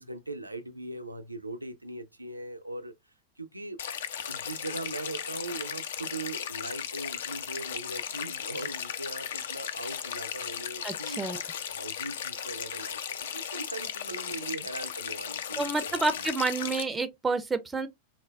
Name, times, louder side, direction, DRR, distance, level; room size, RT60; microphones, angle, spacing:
voice 1, 0.0-2.9 3.4-3.8 4.3-11.2 11.7-16.3 16.6-16.7, right 2 dB, 85° right, 0.4 m, -40 dB
sound 1, 3.8-16.8, left 8 dB, 60° left, 0.3 m, -36 dB
voice 2, 10.8-11.4 15.6-17.9, right 3 dB, 10° right, 0.4 m, -29 dB
4.1 x 2.1 x 2.3 m
figure-of-eight pair, 90°, 0 cm